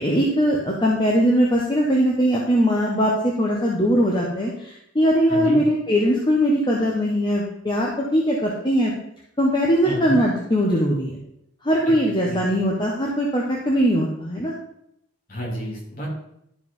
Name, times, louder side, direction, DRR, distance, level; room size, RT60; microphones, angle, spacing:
voice 1, 0.0-8.9 9.4-11.2 11.6-14.5, equal, 20° left, -3 dB, 1.2 m, -20 dB
voice 2, 5.3-5.6 9.8-10.2 11.9-12.0 12.3-12.4 15.3-16.1, equal, 40° left, -3 dB, 3.1 m, -30 dB
11.5 x 4.9 x 5.5 m, 0.76 s
head